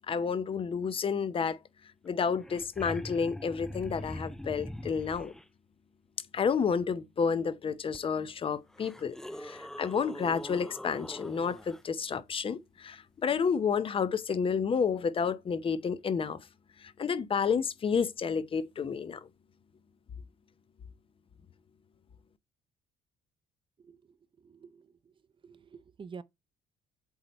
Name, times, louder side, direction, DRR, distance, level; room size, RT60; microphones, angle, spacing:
voice 1, 0.0-1.6 2.0-5.3 6.3-16.4 17.0-19.3, left 6 dB, 30° left, 0.7 m, -30 dB
sound 1, 2.1-2.2 2.3-5.4 7.9-8.0 8.7-11.8 14.3-14.4, left 1 dB, 5° left, 0.3 m, -43 dB
voice 2, 24.4-24.9 25.4-26.2, right 5 dB, 30° right, 0.7 m, -47 dB
8.1 x 3.3 x 4.2 m
cardioid pair, 110°, 17 cm